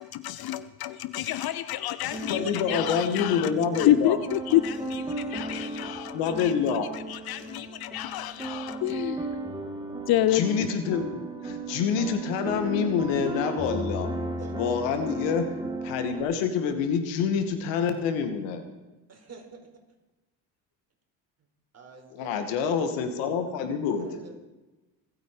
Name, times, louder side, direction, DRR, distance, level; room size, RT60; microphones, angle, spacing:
voice 1, 0.0-9.3 10.1-10.7, left 13 dB, 55° left, 0.7 m, -28 dB
sound 1, 2.1-16.2, right 2 dB, 10° right, 2.7 m, -35 dB
voice 2, 2.3-4.2 6.1-6.9 9.6-9.7 10.3-14.1 14.5-15.4 15.8-18.6 22.1-24.1, left 6 dB, 75° left, 2.3 m, -27 dB
voice 3, 14.2-14.6 19.1-19.6 21.7-22.3 24.0-24.4, right 4 dB, 35° right, 4.5 m, -46 dB
25.5 x 9.1 x 5.1 m
supercardioid pair, 75°, 43 cm